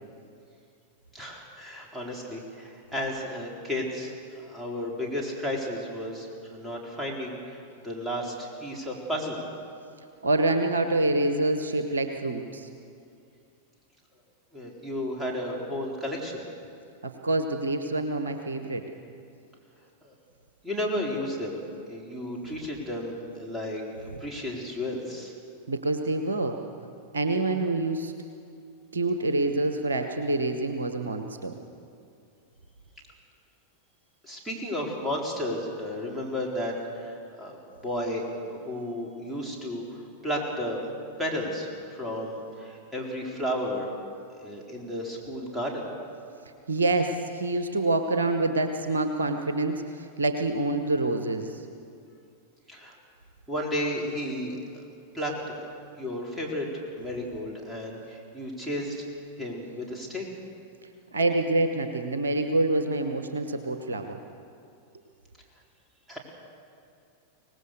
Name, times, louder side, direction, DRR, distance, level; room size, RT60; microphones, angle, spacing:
voice 1, 1.1-7.6 7.8-9.4 14.5-16.4 20.0-20.1 20.6-21.6 21.9-25.3 34.2-37.6 37.8-39.9 40.2-40.8 41.2-43.9 44.4-45.9 52.7-53.0 53.5-54.9 55.1-55.7 56.0-56.7 56.9-59.0 59.4-60.3 66.1-66.2, equal, 5° right, -3 dB, 4.3 m, -33 dB
voice 2, 10.2-12.7 17.0-18.8 25.7-26.6 27.1-28.1 28.9-31.5 46.7-51.6 61.1-64.2, right 2 dB, 70° right, 7 dB, 1.1 m, -26 dB
24.5 x 19.0 x 6.8 m, 2.4 s
figure-of-eight pair, 90°, 0 cm